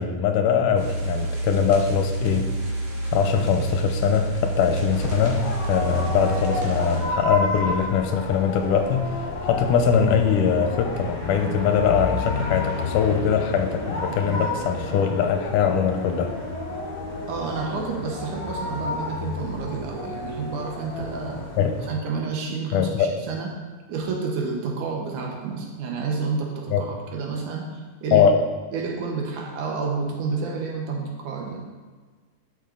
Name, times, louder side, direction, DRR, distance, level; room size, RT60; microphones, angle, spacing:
voice 1, 0.0-2.5 3.1-16.3 21.6-21.7 22.7-23.1 26.7-26.8 28.1-28.4, left 7 dB, 85° left, 5 dB, 2.3 m, -22 dB
sound 1, 0.8-7.0, right 2 dB, 50° right, 3.0 m, -28 dB
sound 2, 4.9-21.9, left 2 dB, 25° left, 3.2 m, -31 dB
voice 2, 17.3-21.4 21.8-23.5 23.9-28.3 28.7-31.6, right 4 dB, 75° right, 1 dB, 2.6 m, -30 dB
12.0 x 5.5 x 3.8 m, 1.4 s
omnidirectional pair, 3.7 m